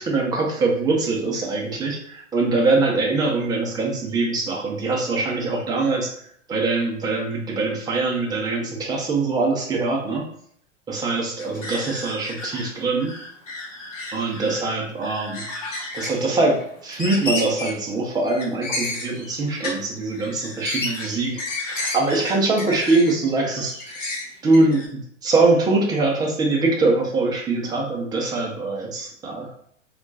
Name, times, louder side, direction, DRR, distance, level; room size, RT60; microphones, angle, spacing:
voice 1, 0.0-6.2 6.5-10.2 10.9-13.1 14.1-15.4 15.9-21.3 21.6-24.0 24.4-24.9 25.2-29.5, right 3 dB, 10° right, -1 dB, 0.5 m, -23 dB
sound 1, 11.4-12.7 13.0-14.7 15.0-16.2 16.5-16.6 16.9-17.8 18.2-19.8 20.1-23.2 23.5-24.9, left 2 dB, 80° left, 0.9 m, -32 dB
2.3 x 2.2 x 3.9 m, 0.63 s
figure-of-eight pair, 100°, 38 cm